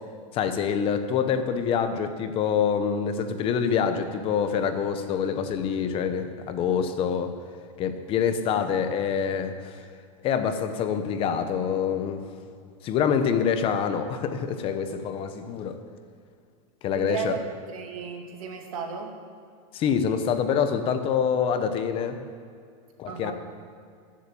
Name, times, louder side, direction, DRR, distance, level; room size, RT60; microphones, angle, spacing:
voice 1, 0.3-7.4 7.8-9.8 10.2-12.3 12.8-15.8 16.8-17.4 19.7-22.2 23.0-23.3, left 7 dB, 30° left, 9 dB, 0.9 m, -26 dB
voice 2, 16.9-17.4 17.7-19.2 23.1-23.3, right 6 dB, 90° right, 3 dB, 2.3 m, -34 dB
14.0 x 7.7 x 8.4 m, 2.3 s
supercardioid pair, 160°, 18 cm